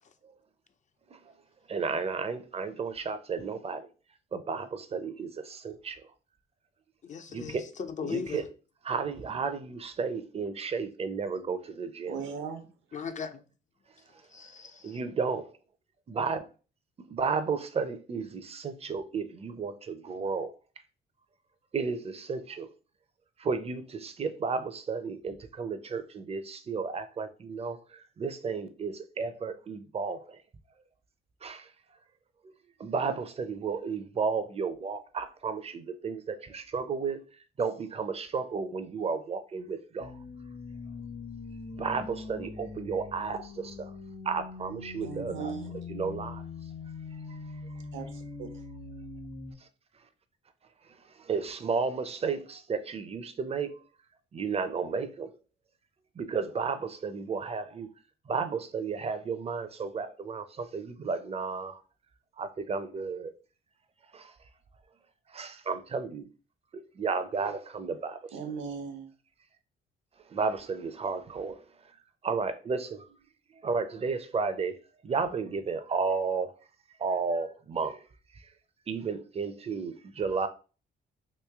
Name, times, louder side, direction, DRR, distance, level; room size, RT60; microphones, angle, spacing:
voice 1, 1.7-3.8 4.3-6.0 7.3-7.6 8.0-8.4 8.8-12.2 14.8-15.4 16.1-16.4 17.1-20.5 21.7-22.7 23.4-27.8 28.2-30.2 31.4-31.6 32.5-32.6 32.8-37.2 37.6-40.1 41.8-43.9 44.3-45.5 45.9-46.4 51.3-53.7 54.3-55.3 56.2-57.9 58.3-61.8 62.4-63.3 64.1-64.2 65.3-66.3 67.0-68.2 70.3-71.6 72.2-73.0 73.6-74.8 75.0-76.5 77.0-78.0 78.9-80.5, right 5 dB, 30° right, 0.5 m, -32 dB
voice 2, 7.0-8.4 12.9-13.4 14.3-15.0, left 6 dB, 40° left, 0.4 m, -38 dB
voice 3, 12.1-12.6 45.0-45.7 47.9-48.1 48.4-48.5 68.3-69.1, right 6 dB, 75° right, 0.8 m, -37 dB
sound 1, 40.0-49.5, left 4 dB, 55° left, 0.9 m, -42 dB
3.1 x 2.7 x 3.5 m
cardioid pair, 90°, 20 cm